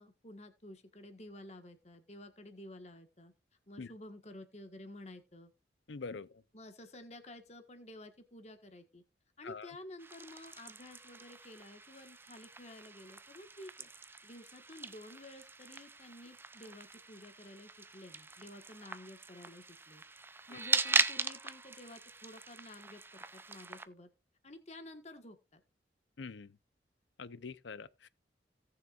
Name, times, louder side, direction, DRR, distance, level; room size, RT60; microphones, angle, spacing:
voice 1, 0.0-3.3 3.7-5.5 6.5-9.0 9.4-20.0 20.5-24.1 24.4-25.6, left 1 dB, 35° left, 1.5 m, -52 dB
voice 2, 5.9-6.4 9.4-9.7 20.5-20.6 26.2-26.6 27.2-28.1, left 4 dB, 80° left, 0.6 m, -45 dB
sound 1, 10.0-23.8, right 3 dB, 10° right, 0.5 m, -39 dB
18.0 x 6.5 x 2.5 m
head